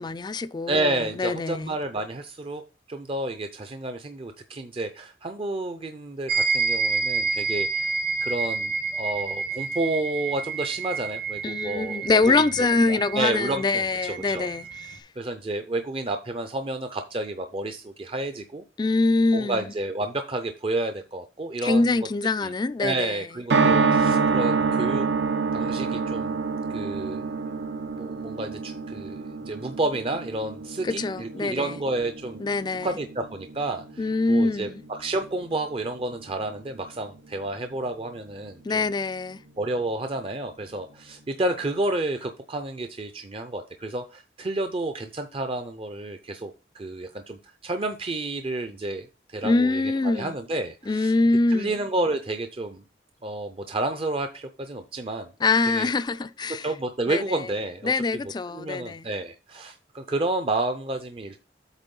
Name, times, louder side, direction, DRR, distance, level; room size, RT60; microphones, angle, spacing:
voice 1, 0.0-1.7 11.4-15.0 18.8-19.6 21.6-23.3 30.8-31.8 32.4-32.9 34.0-34.8 38.6-39.4 49.4-50.3 50.9-51.7 55.4-56.7 57.1-57.5 57.8-59.1, left 3 dB, 25° left, 0.3 m, -24 dB
voice 2, 0.7-2.6 2.9-12.3 12.9-14.5 15.2-18.6 19.3-22.0 22.4-22.5 22.8-25.0 25.5-26.4 26.7-27.3 28.0-32.4 32.8-38.9 39.6-51.1 51.5-52.8 53.2-55.3 55.7-55.9 56.6-57.9 58.5-61.4, right 2 dB, 30° right, 0.5 m, -30 dB
sound 1, 6.3-15.0, right 4 dB, 55° right, 1.0 m, -29 dB
sound 2, 23.5-35.7 36.0-36.1 36.3-36.4, right 4 dB, 75° right, 0.7 m, -27 dB
8.2 x 3.4 x 5.4 m
head